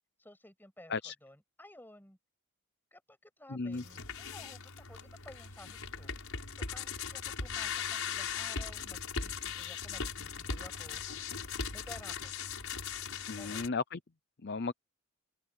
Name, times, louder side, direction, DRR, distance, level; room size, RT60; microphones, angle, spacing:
voice 1, 0.2-2.2 2.9-6.1 6.6-11.3 11.7-12.3 13.4-13.7, left 1 dB, 10° left, 7.6 m, -54 dB
voice 2, 3.5-3.8 13.3-14.0 14.4-14.7, left 4 dB, 50° left, 0.6 m, -35 dB
sound 1, 3.7-13.7, left 6 dB, 70° left, 5.3 m, -39 dB
head